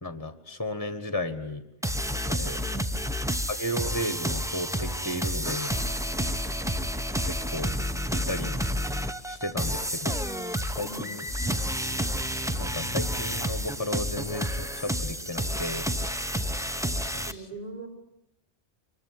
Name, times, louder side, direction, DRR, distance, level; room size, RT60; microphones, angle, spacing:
voice 1, 0.0-1.6 2.3-2.6 3.5-5.7 7.5-7.8 8.1-8.6 8.9-9.0 9.3-10.3 10.6-11.2 12.6-15.9 17.1-17.4, left 1 dB, 15° left, 9 dB, 1.5 m, -34 dB
sound 1, 1.8-17.3, equal, 5° right, 0.8 m, -30 dB
voice 2, 2.6-2.9 10.8-11.2 17.2-17.9, right 2 dB, 30° right, 4 dB, 5.5 m, -41 dB
24.5 x 22.0 x 9.8 m, 0.83 s
omnidirectional pair, 1.2 m